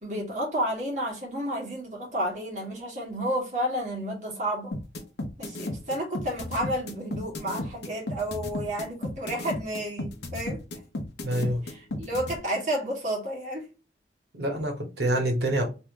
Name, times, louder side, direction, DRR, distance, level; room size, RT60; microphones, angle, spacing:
voice 1, 0.0-4.7 5.4-10.6 11.6-13.7, equal, 40° right, 1.6 m, -31 dB
sound 1, 4.7-12.3, left 1 dB, 75° left, 0.8 m, -33 dB
voice 2, 11.2-11.6 14.3-15.7, right 1 dB, 70° right, 1.3 m, -26 dB
3.4 x 2.7 x 2.9 m
head